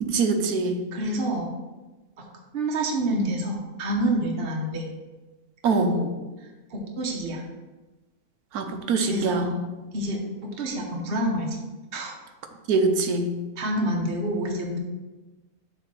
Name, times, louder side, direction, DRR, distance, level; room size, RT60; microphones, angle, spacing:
voice 1, 0.0-0.8 5.6-5.9 8.5-9.5 12.7-13.3, right 4 dB, 85° right, 6 dB, 1.3 m, -23 dB
voice 2, 0.9-1.5 2.2-2.3 2.5-4.8 5.6-6.1 6.7-7.4 9.0-9.6 9.9-11.6 11.9-12.1 13.6-14.8, right 1 dB, 45° right, -1 dB, 1.1 m, -28 dB
7.1 x 3.4 x 6.0 m, 1.2 s
omnidirectional pair, 1.5 m